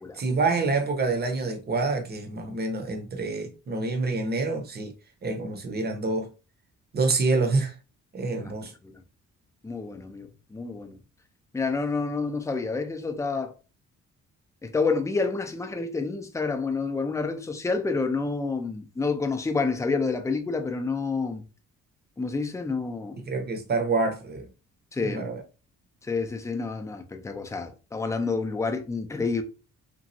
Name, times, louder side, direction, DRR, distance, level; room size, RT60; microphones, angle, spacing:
voice 1, 0.1-4.9 5.2-6.3 6.9-7.7 8.1-8.7 23.2-24.5 25.0-25.4, right 3 dB, 35° right, 0.8 m, -27 dB
voice 2, 9.6-11.0 11.5-13.5 14.6-21.4 22.2-23.2 24.9-25.2 26.0-29.4, left 4 dB, 10° left, 0.5 m, -29 dB
3.0 x 2.4 x 2.7 m
cardioid pair, 90°, 30 cm